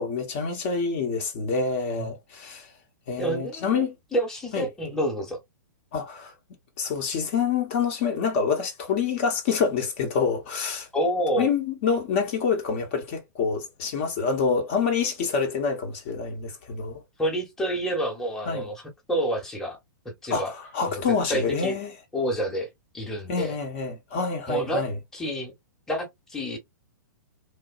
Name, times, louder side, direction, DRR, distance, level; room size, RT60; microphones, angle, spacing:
voice 1, 0.0-2.7 3.1-3.9 4.5-4.7 5.9-6.3 6.8-10.9 11.4-17.0 18.5-18.7 20.3-21.9 23.3-25.0, left 5 dB, 40° left, 0.8 m, -27 dB
voice 2, 3.2-3.8 4.1-5.4 10.9-11.5 17.2-18.8 19.1-19.8 20.0-20.5 20.9-21.8 22.1-22.7 22.9-23.5 24.5-24.8 25.1-25.5 25.9-26.6, right 1 dB, 5° left, 0.9 m, -28 dB
3.0 x 2.1 x 2.4 m
figure-of-eight pair, 110°, 10 cm